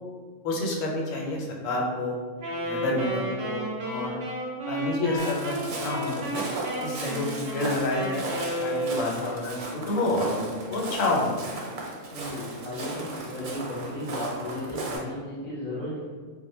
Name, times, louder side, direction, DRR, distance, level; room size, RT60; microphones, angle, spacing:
voice 1, 0.4-2.2 2.6-4.3 4.7-6.4 6.8-8.3 8.6-11.4, left 2 dB, 80° left, -1 dB, 0.9 m, -29 dB
Wind instrument woodwind instrument, 2.4-9.3, right 1 dB, 65° right, 0.7 m, -32 dB
Walk footsteps, 5.2-15.0, right 2 dB, 90° right, 1.0 m, -36 dB
voice 2, 12.1-16.1, left 1 dB, 40° left, -9 dB, 0.7 m, -35 dB
2.1 x 2.1 x 3.0 m, 1.6 s
omnidirectional pair, 1.3 m